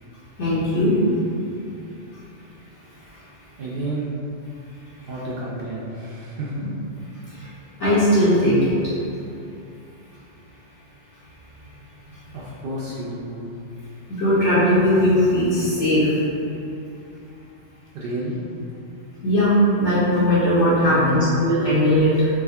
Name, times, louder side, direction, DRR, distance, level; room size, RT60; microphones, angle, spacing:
voice 1, 0.4-0.9 7.3-7.5 7.8-8.9 14.1-16.1 19.2-22.3, equal, 75° left, -11 dB, 1.2 m, -18 dB
voice 2, 3.6-4.1 5.0-6.6 12.3-13.4 17.9-18.4 20.8-21.3, right 1 dB, 60° right, -7 dB, 0.6 m, -30 dB
3.6 x 2.3 x 3.3 m, 2.7 s
omnidirectional pair, 1.3 m